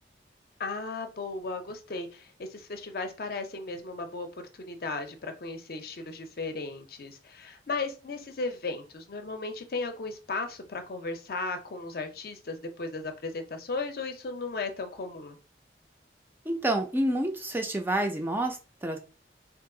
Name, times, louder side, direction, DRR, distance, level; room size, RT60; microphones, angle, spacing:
voice 1, 0.6-4.3 4.5-15.4, left 3 dB, 55° left, 7 dB, 0.5 m, -36 dB
voice 2, 16.5-19.0, right 1 dB, 10° right, 5 dB, 0.3 m, -28 dB
2.7 x 2.3 x 3.7 m, 0.33 s
head